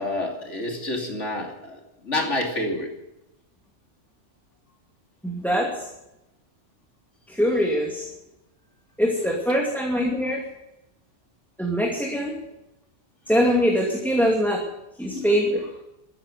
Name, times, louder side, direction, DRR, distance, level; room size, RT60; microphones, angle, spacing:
voice 1, 0.0-2.9 15.1-15.3, left 2 dB, 75° left, 2 dB, 3.3 m, -28 dB
voice 2, 5.2-5.8 7.3-8.1 9.0-10.4 11.6-12.4 13.3-14.6 15.0-15.6, equal, ahead, 0 dB, 2.3 m, -23 dB
14.0 x 10.5 x 9.2 m, 0.91 s
omnidirectional pair, 1.3 m